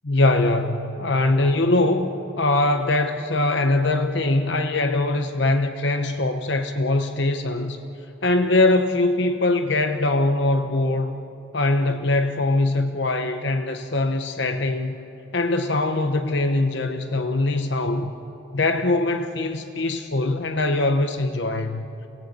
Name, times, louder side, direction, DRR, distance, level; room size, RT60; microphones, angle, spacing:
voice 1, 0.0-7.8 8.2-11.1 11.5-15.0 15.3-18.1 18.5-21.9, left 2 dB, 55° left, 8 dB, 1.0 m, -22 dB
28.0 x 19.5 x 8.3 m, 2.9 s
head